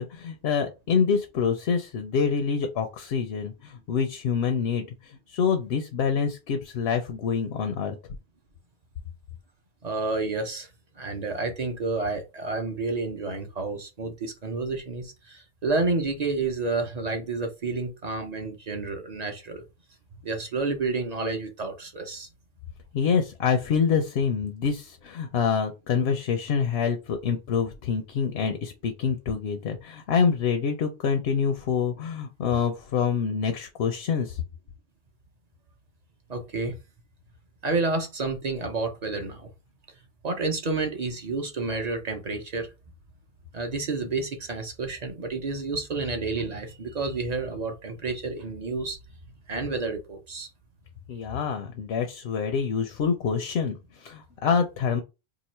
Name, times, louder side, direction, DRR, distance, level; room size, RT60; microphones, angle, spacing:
voice 1, 0.0-8.0 22.9-34.4 51.1-55.0, left 6 dB, 75° left, 0.8 m, -26 dB
voice 2, 9.8-10.7 11.0-19.6 20.2-22.3 36.3-36.8 37.6-39.5 40.2-42.7 43.5-49.0 49.5-50.5, right 3 dB, 45° right, 0.7 m, -30 dB
2.9 x 2.4 x 4.2 m
omnidirectional pair, 1.1 m